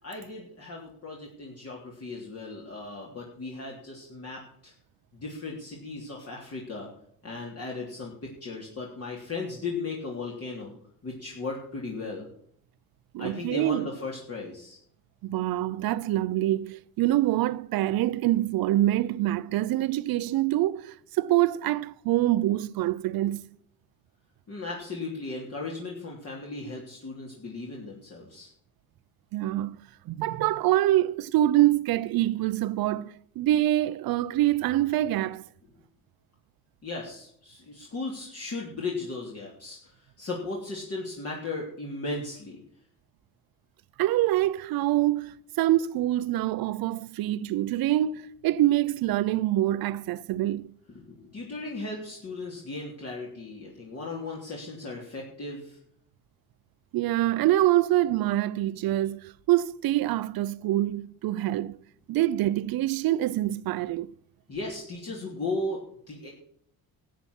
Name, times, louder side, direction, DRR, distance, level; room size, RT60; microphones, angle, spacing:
voice 1, 0.0-4.7 5.1-6.9 7.2-10.7 11.0-12.3 13.2-14.8 24.5-28.5 36.8-42.6 50.9-55.8 64.5-66.3, left 3 dB, 45° left, 3.3 m, -36 dB
voice 2, 13.1-13.9 15.2-23.4 29.3-29.8 30.1-35.4 44.0-50.7 56.9-61.8 62.1-64.1, right 14 dB, 80° right, 0.7 m, -25 dB
13.0 x 8.5 x 6.1 m
cardioid pair, 115°, 35 cm